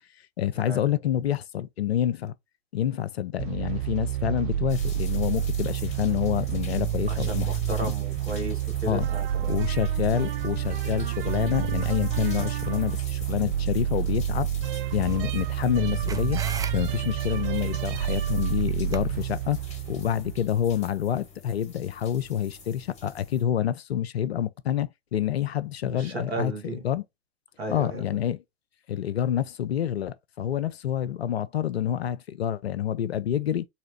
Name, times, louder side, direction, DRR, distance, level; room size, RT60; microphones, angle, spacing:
voice 1, 0.4-2.3 2.7-7.5 8.9-9.1 9.5-14.5 14.9-16.4 16.7-19.6 19.9-26.5 26.8-27.0 27.7-28.4 28.9-33.7, left 10 dB, 80° left, 0.5 m, -27 dB
sound 1, 3.4-20.7, right 11 dB, 55° right, 0.6 m, -29 dB
sound 2, 4.7-23.4, left 4 dB, 20° left, 1.9 m, -47 dB
voice 2, 7.1-9.6 25.8-26.8 27.6-28.0, right 2 dB, 75° right, 1.9 m, -35 dB
sound 3, 15.0-20.1, right 6 dB, 10° right, 0.3 m, -42 dB
4.0 x 2.8 x 2.9 m
figure-of-eight pair, 80°, 31 cm